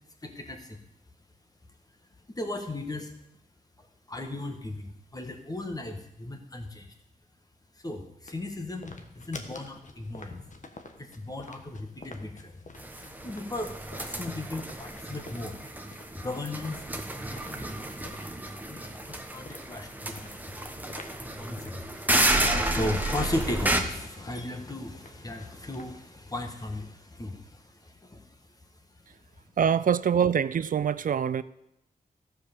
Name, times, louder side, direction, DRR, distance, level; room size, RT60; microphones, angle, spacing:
voice 1, 0.2-0.8 2.3-3.1 3.8-6.9 7.8-10.4 11.0-12.6 13.2-13.7 14.0-15.6 16.1-16.9 17.2-17.9 18.7-20.5 21.2-21.9 22.5-28.4, left 1 dB, 25° left, 5 dB, 1.6 m, -36 dB
sound 1, 8.3-26.1, left 3 dB, 55° left, 1.3 m, -50 dB
sound 2, 12.8-23.8, right 1 dB, 10° right, 1.2 m, -31 dB
voice 2, 29.6-31.4, right 7 dB, 60° right, 16 dB, 0.5 m, -24 dB
14.0 x 5.1 x 6.7 m, 0.83 s
wide cardioid pair, 85°, 15 cm